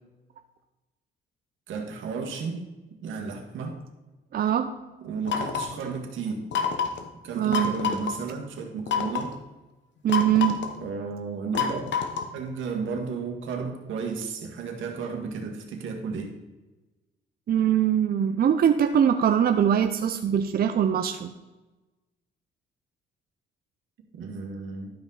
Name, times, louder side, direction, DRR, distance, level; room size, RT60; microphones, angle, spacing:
voice 1, 1.7-2.7 3.0-3.8 5.0-6.4 7.2-9.3 10.8-11.8 12.3-16.3 24.1-24.9, right 5 dB, 75° right, 2 dB, 1.7 m, -33 dB
voice 2, 4.3-4.7 7.4-7.8 10.0-10.6 17.5-21.3, right 9 dB, 50° right, 8 dB, 0.6 m, -22 dB
sound 1, 5.3-5.8 6.5-7.0 7.5-8.1 8.9-9.3 10.1-10.8 11.6-12.4, left 6 dB, 65° left, 1.1 m, -27 dB
12.0 x 5.2 x 4.0 m, 1.1 s
cardioid pair, 90°, 20 cm